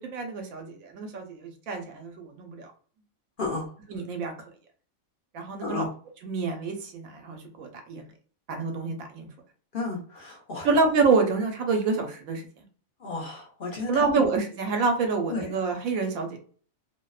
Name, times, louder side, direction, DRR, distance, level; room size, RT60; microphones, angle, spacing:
voice 1, 0.0-2.7 3.9-4.5 5.3-5.9 6.2-8.0 8.5-9.3 10.6-12.7 13.9-16.4, right 4 dB, 85° right, 4 dB, 1.0 m, -27 dB
voice 2, 3.4-3.7 5.6-5.9 9.7-10.7 13.0-14.2 15.3-15.5, left 3 dB, 55° left, -1 dB, 0.6 m, -32 dB
2.6 x 2.1 x 2.3 m, 0.43 s
omnidirectional pair, 1.4 m